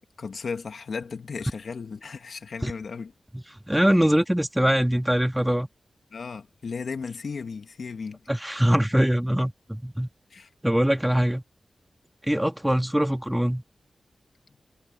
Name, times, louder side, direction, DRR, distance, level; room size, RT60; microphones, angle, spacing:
voice 1, 0.2-3.1 6.1-8.2 10.3-10.5, left 5 dB, 70° left, 2.2 m, -35 dB
voice 2, 3.3-5.7 8.3-10.1 10.6-11.4 12.3-13.6, equal, 5° right, 2.4 m, -23 dB
cardioid pair, 45°, 0 cm